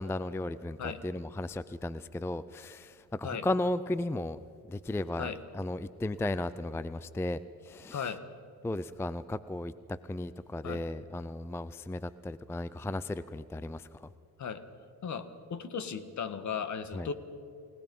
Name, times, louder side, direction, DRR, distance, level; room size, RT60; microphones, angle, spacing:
voice 1, 0.0-4.4 4.7-8.1 8.6-14.1 16.9-17.1, left 2 dB, 5° left, 16 dB, 0.4 m, -35 dB
voice 2, 7.9-8.2 10.6-10.8 14.4-14.6 15.0-17.1, left 6 dB, 50° left, 11 dB, 1.6 m, -36 dB
29.5 x 18.0 x 5.4 m, 2.6 s
cardioid pair, 95°, 37 cm